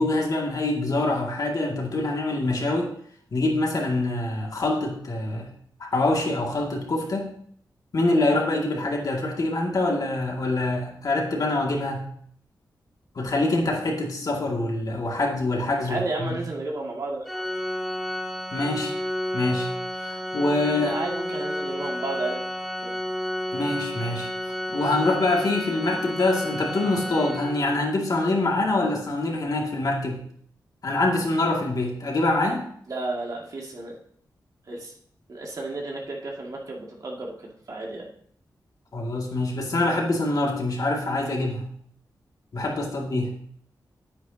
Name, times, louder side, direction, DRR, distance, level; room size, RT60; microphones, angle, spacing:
voice 1, 0.0-2.9 3.3-5.5 5.8-7.3 7.9-12.1 13.2-16.4 18.5-19.0 19.3-19.7 20.0-21.0 23.5-24.3 24.7-30.2 30.8-32.7 38.9-41.7 42.5-43.3, left 2 dB, 55° left, -1 dB, 2.3 m, -25 dB
voice 2, 15.8-17.3 20.8-22.4 22.8-22.9 32.9-34.0 34.7-34.9 35.3-38.1, right 2 dB, 55° right, -1 dB, 2.3 m, -32 dB
Organ, 17.3-28.0, equal, ahead, 1.1 m, -31 dB
9.6 x 9.1 x 2.9 m, 0.62 s
wide cardioid pair, 85°, 7 cm